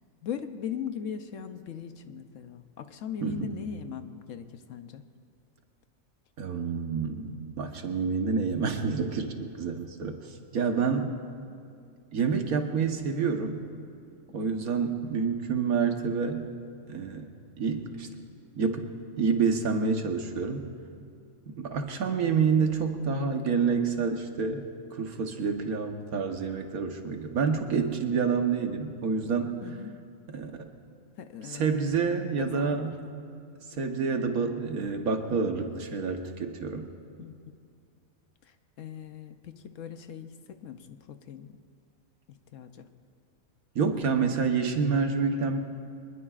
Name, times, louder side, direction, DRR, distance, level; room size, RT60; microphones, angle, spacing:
voice 1, 0.2-5.0 14.3-14.7 29.6-29.9 31.2-32.9 37.2-37.4 38.4-41.5 42.5-42.9, left 7 dB, 65° left, 8 dB, 1.0 m, -39 dB
voice 2, 3.2-3.6 6.4-10.2 10.5-11.2 12.1-13.6 14.3-16.5 16.9-17.3 17.6-18.1 18.6-18.9 19.2-20.6 21.6-24.6 24.9-29.6 30.3-30.7 31.5-33.0 33.8-36.9 43.7-45.6, right 5 dB, 80° right, 4 dB, 1.6 m, -28 dB
24.5 x 20.5 x 2.5 m, 2.4 s
omnidirectional pair, 1.5 m